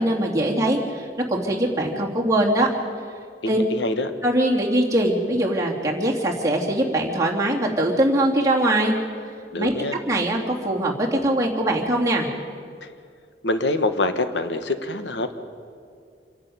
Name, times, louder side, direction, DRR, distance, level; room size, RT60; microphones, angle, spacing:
voice 1, 0.0-2.7 3.5-3.6 4.2-8.9 9.6-9.7 10.1-12.3, right 1 dB, 20° right, -2 dB, 2.9 m, -22 dB
voice 2, 3.4-4.1 9.5-10.0 13.4-15.3, left 2 dB, 80° left, 9 dB, 1.4 m, -25 dB
26.5 x 11.0 x 9.5 m, 2.2 s
head